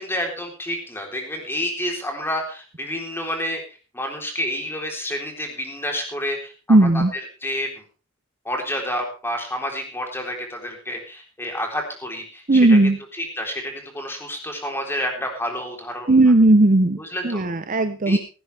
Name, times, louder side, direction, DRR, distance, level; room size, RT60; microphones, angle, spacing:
voice 1, 0.0-3.6 3.9-7.7 8.5-12.8 13.1-16.1 17.0-17.4 18.1-18.2, equal, 10° left, 2 dB, 3.8 m, -29 dB
voice 2, 6.7-7.1 12.5-13.0 16.1-17.0 17.2-18.2, right 2 dB, 40° right, 10 dB, 0.8 m, -15 dB
16.5 x 15.5 x 3.5 m, 0.34 s
head